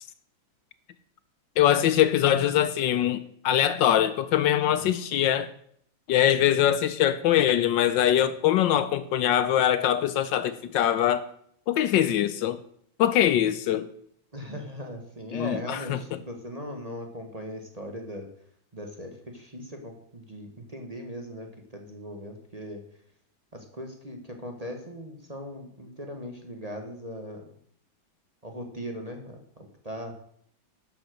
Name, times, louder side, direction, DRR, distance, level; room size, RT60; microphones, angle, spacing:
voice 1, 1.6-5.5 6.1-11.3 11.7-12.6 13.0-13.9 15.3-16.0, left 11 dB, 75° left, 14 dB, 1.3 m, -23 dB
voice 2, 14.3-18.3 18.7-22.8 23.5-27.5 28.4-30.1, equal, 20° right, 3 dB, 1.4 m, -39 dB
12.0 x 7.3 x 6.5 m, 0.66 s
omnidirectional pair, 2.2 m